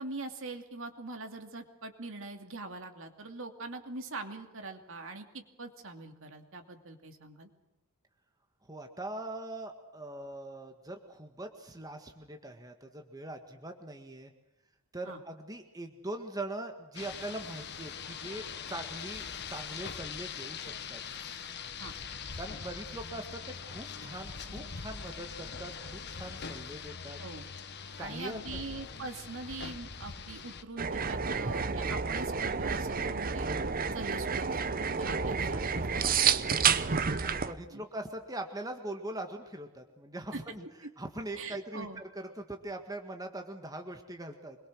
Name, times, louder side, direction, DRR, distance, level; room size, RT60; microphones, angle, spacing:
voice 1, 0.0-7.5 15.1-15.2 21.8-21.9 27.2-27.4 28.0-33.5 33.9-36.6 37.7-37.8 40.3-40.4 41.3-42.0 42.3-42.4, right 3 dB, 60° right, 5 dB, 2.7 m, -43 dB
voice 2, 8.7-14.3 14.9-21.0 22.4-27.2 28.0-28.6 35.1-35.5 37.2-40.7 41.0-44.6, right 1 dB, 15° right, 4 dB, 1.7 m, -42 dB
Rain, 17.0-30.6, left 6 dB, 50° left, 1.5 m, -42 dB
sound 1, 30.8-37.5, right 6 dB, 40° right, 0.9 m, -30 dB
25.5 x 22.0 x 6.3 m, 0.94 s
head